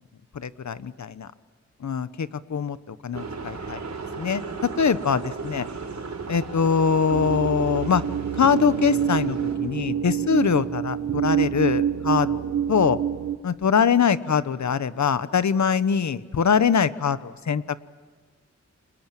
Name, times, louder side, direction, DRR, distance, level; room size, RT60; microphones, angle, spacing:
voice 1, 0.3-1.3 1.8-3.8 4.2-4.4 4.8-5.7 6.3-8.0 8.4-12.4 12.7-13.0 13.4-17.8, left 6 dB, 75° left, 14 dB, 1.1 m, -23 dB
sound 1, 3.1-9.6, right 4 dB, 70° right, 4.7 m, -35 dB
sound 2, 7.1-13.4, right 9 dB, 85° right, 1.5 m, -26 dB
30.0 x 26.0 x 7.7 m, 1.5 s
wide cardioid pair, 85°, 29 cm